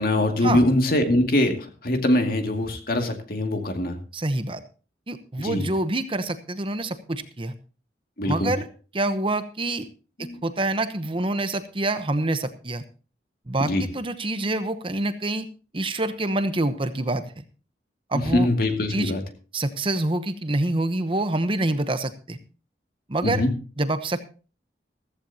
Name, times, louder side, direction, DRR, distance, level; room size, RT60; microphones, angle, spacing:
voice 1, 0.0-4.0 5.4-5.7 8.2-8.5 10.2-10.4 13.6-13.8 18.1-19.2 23.2-23.5, left 1 dB, 55° left, 5 dB, 2.2 m, -23 dB
voice 2, 4.1-4.6 5.1-7.5 8.3-8.7 8.9-9.9 10.2-12.8 13.5-15.5 15.7-17.2 18.1-18.5 18.9-19.1 19.5-22.4 23.1-23.4 23.8-24.2, right 2 dB, 30° right, 11 dB, 0.9 m, -26 dB
15.0 x 14.5 x 2.8 m, 0.36 s
head